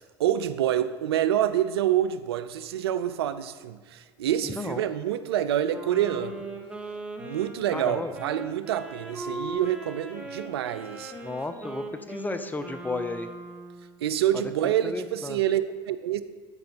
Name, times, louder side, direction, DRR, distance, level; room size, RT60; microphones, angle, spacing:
voice 1, 0.2-6.4 7.2-11.1 14.0-16.2, right 11 dB, 85° right, 13 dB, 0.4 m, -27 dB
voice 2, 4.4-4.8 7.7-8.1 11.2-13.3 14.6-15.4, left 3 dB, 15° left, 10 dB, 0.6 m, -33 dB
Wind instrument woodwind instrument, 5.7-13.9, right 2 dB, 10° right, 1.4 m, -39 dB
12.0 x 5.1 x 2.8 m, 1.5 s
hypercardioid pair, 75°, 13 cm